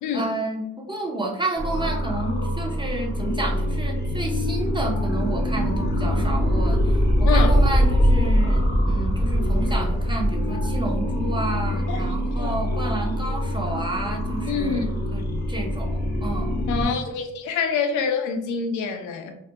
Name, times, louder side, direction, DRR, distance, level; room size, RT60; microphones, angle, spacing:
voice 1, 0.1-16.6, right 2 dB, 15° right, 0 dB, 0.4 m, -31 dB
sound 1, 1.6-16.9, equal, 35° left, 0.7 m, -23 dB
voice 2, 14.5-14.9 16.7-19.3, left 5 dB, 90° left, 6 dB, 0.5 m, -26 dB
2.3 x 2.1 x 2.7 m, 0.85 s
cardioid pair, 90°, 30 cm